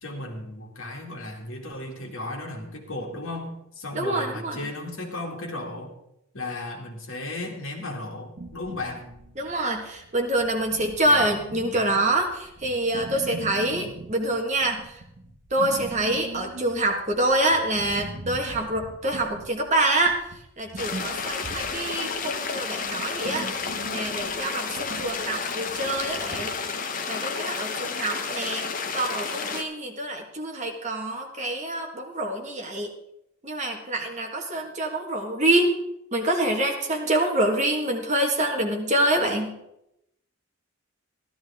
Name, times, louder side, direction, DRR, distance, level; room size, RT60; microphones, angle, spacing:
voice 1, 0.0-5.9 6.3-9.0, left 2 dB, 65° left, 1 dB, 2.2 m, -35 dB
voice 2, 3.9-4.6 9.4-15.0 15.5-20.2 20.6-23.5 23.9-26.5 27.1-28.7 28.9-32.9 33.4-35.8 36.1-39.6, right 1 dB, 35° right, 2 dB, 1.6 m, -26 dB
sound 1, 8.4-26.6, right 2 dB, 50° right, 1.4 m, -42 dB
sound 2, 20.8-29.6, left 5 dB, 40° left, 0.8 m, -31 dB
14.0 x 12.5 x 3.6 m, 0.80 s
head